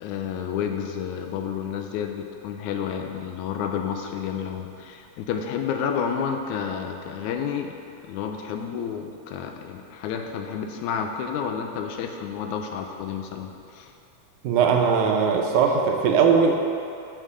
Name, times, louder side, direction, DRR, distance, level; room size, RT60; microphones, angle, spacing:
voice 1, 0.0-7.8 8.0-13.9, left 7 dB, 80° left, 4 dB, 2.0 m, -30 dB
voice 2, 14.4-16.6, right 6 dB, 80° right, 2 dB, 2.1 m, -19 dB
6.8 x 6.4 x 4.9 m, 2.6 s
omnidirectional pair, 3.5 m